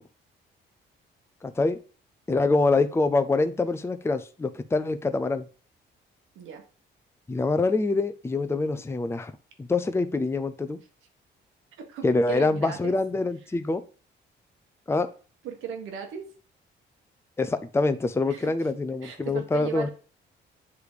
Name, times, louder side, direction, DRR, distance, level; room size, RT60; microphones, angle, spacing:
voice 1, 1.4-1.8 2.3-5.5 7.3-9.3 9.6-10.8 12.0-13.8 14.9-15.1 17.4-19.9, left 3 dB, 15° left, 9 dB, 0.6 m, -25 dB
voice 2, 11.9-13.0 15.4-16.3 18.3-18.7 19.0-19.9, right 7 dB, 90° right, 5 dB, 1.6 m, -37 dB
8.2 x 3.4 x 5.0 m, 0.38 s
cardioid pair, 90°, 20 cm